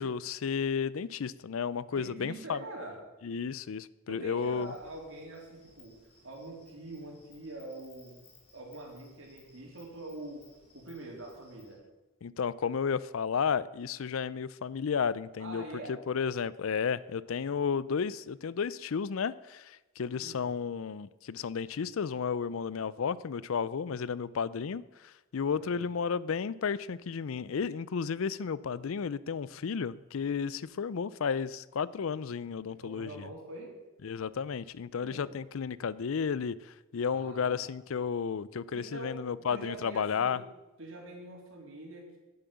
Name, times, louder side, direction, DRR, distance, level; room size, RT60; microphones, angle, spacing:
voice 1, 0.0-2.6 3.2-4.7 12.2-15.6 16.1-33.3 34.0-40.4, left 6 dB, 70° left, 19 dB, 0.4 m, -33 dB
voice 2, 1.9-3.0 4.1-8.2 8.5-10.5 10.7-11.8 15.4-16.0 20.2-20.5 25.7-25.9 32.8-33.8 35.0-35.3 37.0-37.6 38.7-40.4 40.8-42.2, right 2 dB, 65° right, 0 dB, 3.4 m, -44 dB
Insect, 4.4-11.8, left 3 dB, 30° left, 3.5 m, -62 dB
10.0 x 9.6 x 6.9 m, 1.1 s
head